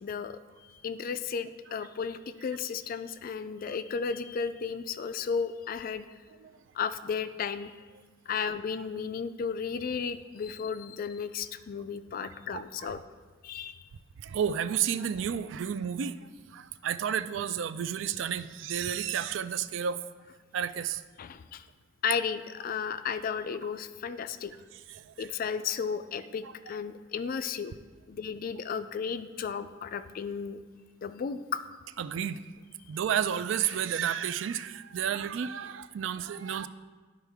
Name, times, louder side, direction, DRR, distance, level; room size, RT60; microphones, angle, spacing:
voice 1, 0.0-6.0 6.7-7.7 8.3-13.0 13.4-13.9 21.2-21.6 22.0-24.5 25.2-27.8 28.1-30.6 31.0-31.6, left 6 dB, 50° left, 12 dB, 0.3 m, -34 dB
voice 2, 12.2-13.0 14.2-20.0 20.5-21.0 24.9-25.3 26.4-26.5 32.0-32.4 32.9-36.7, right 8 dB, 75° right, 14 dB, 0.3 m, -32 dB
11.5 x 4.7 x 3.5 m, 1.4 s
head